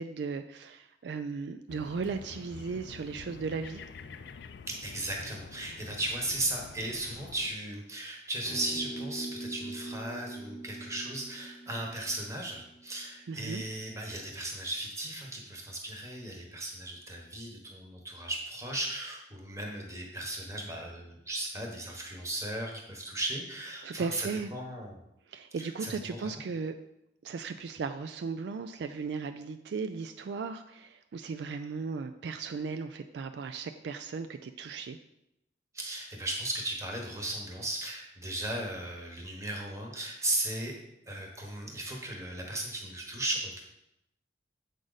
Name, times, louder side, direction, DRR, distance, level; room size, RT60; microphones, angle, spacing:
voice 1, 0.0-3.8 13.3-13.6 23.8-24.5 25.3-26.8 27.2-35.0, right 5 dB, 65° right, 8 dB, 0.3 m, -36 dB
sound 1, 1.7-7.5, left 5 dB, 65° left, 0.4 m, -48 dB
voice 2, 4.7-25.0 25.6-26.3 35.7-40.8 41.1-43.6, right 1 dB, 15° right, 0 dB, 1.2 m, -36 dB
sound 2, 8.5-13.0, right 2 dB, 15° left, 1.1 m, -42 dB
7.6 x 5.0 x 4.0 m, 0.85 s
head